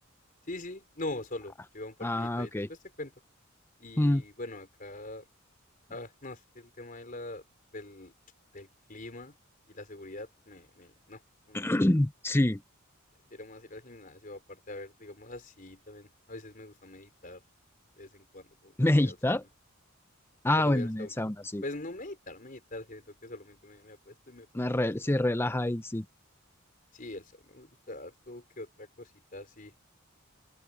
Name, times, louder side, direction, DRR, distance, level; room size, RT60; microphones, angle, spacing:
voice 1, 0.5-3.1 3.8-5.2 5.9-7.4 7.7-8.1 8.5-9.4 9.7-11.2 11.5-11.7 13.3-17.4 18.0-19.4 20.6-21.1 21.6-24.6 25.0-25.1 26.9-29.7, left 2 dB, 40° left, 4.5 m, -43 dB
voice 2, 2.0-2.7 4.0-4.2 11.5-12.6 18.8-19.4 20.4-21.6 24.5-26.0, left 1 dB, 10° left, 0.5 m, -26 dB
open air
head